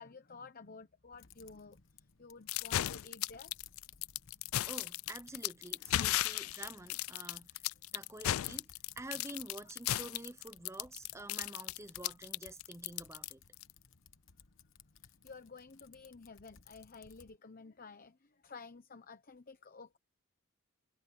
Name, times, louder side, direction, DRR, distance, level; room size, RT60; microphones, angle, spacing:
voice 1, 0.0-3.5 15.0-20.0, left 4 dB, 45° left, 1.0 m, -52 dB
Typing, 1.1-17.4, left 6 dB, 65° left, 1.1 m, -61 dB
Gore Rain, 2.5-13.7, left 14 dB, 85° left, 0.4 m, -35 dB
voice 2, 4.7-8.7 9.0-13.4, right 2 dB, 15° right, 0.8 m, -48 dB
head